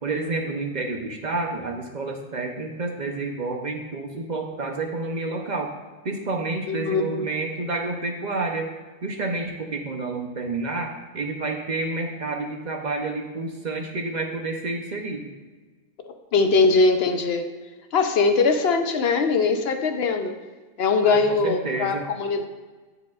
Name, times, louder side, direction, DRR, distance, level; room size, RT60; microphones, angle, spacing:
voice 1, 0.0-5.7 6.0-8.7 9.0-15.3 21.0-22.1, right 3 dB, 45° right, 2 dB, 0.8 m, -29 dB
voice 2, 6.7-7.3 16.1-17.5 17.9-20.3 20.8-22.5, left 4 dB, 65° left, 7 dB, 0.8 m, -21 dB
14.5 x 5.0 x 2.4 m, 1.3 s
omnidirectional pair, 1.1 m